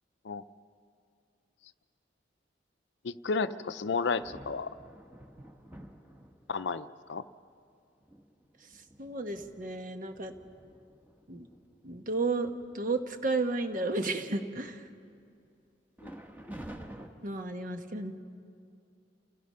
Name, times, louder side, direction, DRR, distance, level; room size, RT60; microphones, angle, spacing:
voice 1, 3.0-4.7 6.5-7.3 16.0-16.1, left 4 dB, 70° left, 13 dB, 0.5 m, -32 dB
sound 1, 3.8-6.7 7.4-7.5 8.0-11.6 12.1-12.3 12.6-13.0 13.4-14.2 16.0-17.1, right 1 dB, 10° right, 1.2 m, -50 dB
voice 2, 9.0-10.3 11.3-11.5 11.8-14.8 17.2-18.1, right 3 dB, 45° right, 7 dB, 1.1 m, -32 dB
28.5 x 16.0 x 5.6 m, 2.4 s
head